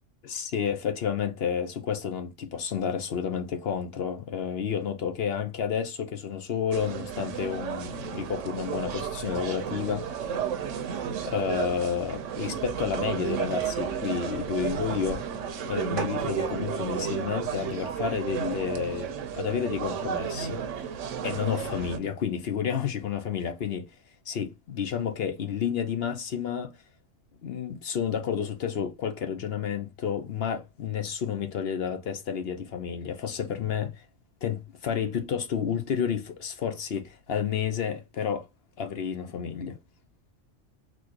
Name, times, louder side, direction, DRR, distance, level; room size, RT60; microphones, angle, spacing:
voice 1, 0.2-10.0 11.2-15.2 15.6-20.6 21.2-23.9 24.3-26.7 27.4-34.0 34.4-38.5 38.8-39.8, left 7 dB, 60° left, 0.9 m, -30 dB
sound 1, 6.7-22.0, right 7 dB, 80° right, 1.0 m, -32 dB
4.2 x 3.0 x 2.8 m
omnidirectional pair, 1.3 m